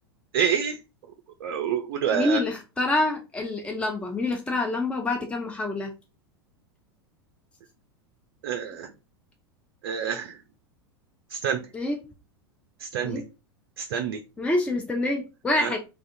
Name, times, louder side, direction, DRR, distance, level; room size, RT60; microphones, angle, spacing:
voice 1, 0.3-0.8 1.4-2.4 8.4-8.9 9.8-10.4 11.3-11.6 12.8-13.2 13.8-14.2 15.6-15.7, right 8 dB, 55° right, 6 dB, 0.4 m, -27 dB
voice 2, 2.1-5.9 11.7-12.0 13.0-13.2 14.4-15.8, left 2 dB, 10° left, 2 dB, 0.5 m, -26 dB
2.3 x 2.1 x 2.6 m, 0.29 s
figure-of-eight pair, 90°, 13 cm